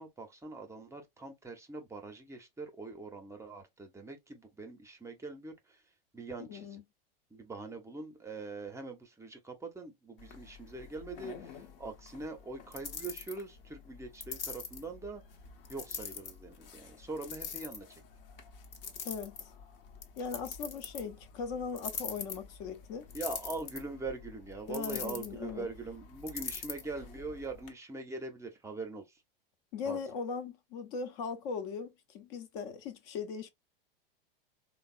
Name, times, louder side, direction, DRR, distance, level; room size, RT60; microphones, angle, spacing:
voice 1, 0.0-5.8 6.1-6.8 7.3-15.2 15.7-18.0 23.1-29.2 29.9-30.0, right 3 dB, 10° right, 0.5 m, -43 dB
voice 2, 6.4-6.8 19.0-19.4 20.2-23.0 24.7-25.7 29.7-33.5, left 5 dB, 45° left, 0.5 m, -39 dB
sound 1, 10.2-27.7, left 6 dB, 70° left, 0.8 m, -45 dB
3.3 x 2.0 x 2.3 m
hypercardioid pair, 95°, 29 cm